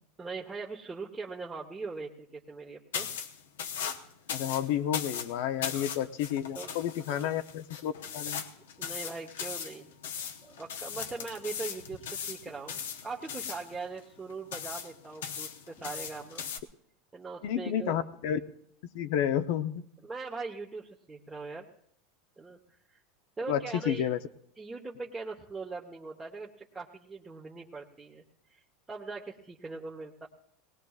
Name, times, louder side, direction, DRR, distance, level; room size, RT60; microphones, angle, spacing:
voice 1, 0.2-3.1 5.7-5.8 6.5-6.8 7.1-7.3 8.8-9.9 10.2-12.0 12.3-16.4 17.1-18.0 20.0-21.7 22.4-22.6 22.9-23.0 23.4-24.1 24.6-28.2 28.5-28.6 28.9-30.3, right 4 dB, 20° right, -1 dB, 1.1 m, -41 dB
sound 1, 2.9-16.6, left 7 dB, 85° left, 0.9 m, -39 dB
voice 2, 4.3-8.4 17.4-18.4 18.8-19.9 23.5-24.2, left 10 dB, 70° left, 10 dB, 0.7 m, -31 dB
19.0 x 18.5 x 2.4 m, 0.71 s
supercardioid pair, 105°, 0 cm